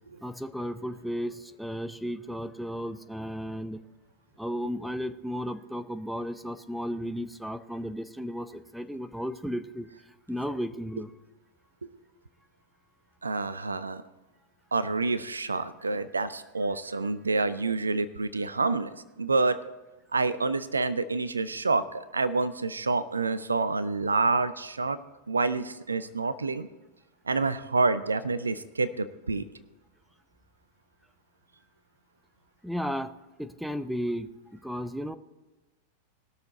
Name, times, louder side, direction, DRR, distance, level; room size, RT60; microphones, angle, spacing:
voice 1, 0.2-3.8 4.4-9.9 10.3-11.1 32.6-33.1 33.4-34.3 34.6-35.2, equal, ahead, 12 dB, 0.6 m, -34 dB
voice 2, 13.2-14.0 14.7-18.9 19.2-19.6 20.1-25.0 25.3-26.7 27.3-29.4, right 3 dB, 75° right, 15 dB, 0.5 m, -28 dB
20.0 x 6.6 x 4.1 m, 1.1 s
figure-of-eight pair, 90°, 0 cm